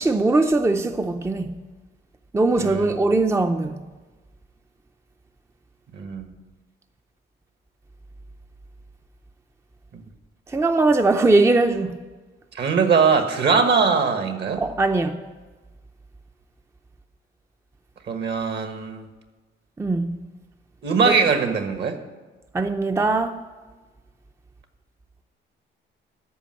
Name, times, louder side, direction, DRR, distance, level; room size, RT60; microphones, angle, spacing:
voice 1, 0.0-1.5 2.3-3.7 10.5-12.0 14.6-15.2 19.8-20.2 21.1-21.2 22.5-23.3, right 2 dB, 15° right, 0.5 m, -20 dB
voice 2, 2.6-2.9 5.9-6.3 9.9-10.0 12.5-14.6 18.1-19.0 20.8-22.0, right 5 dB, 60° right, 1.4 m, -21 dB
13.5 x 5.2 x 7.6 m
cardioid pair, 90°, 20 cm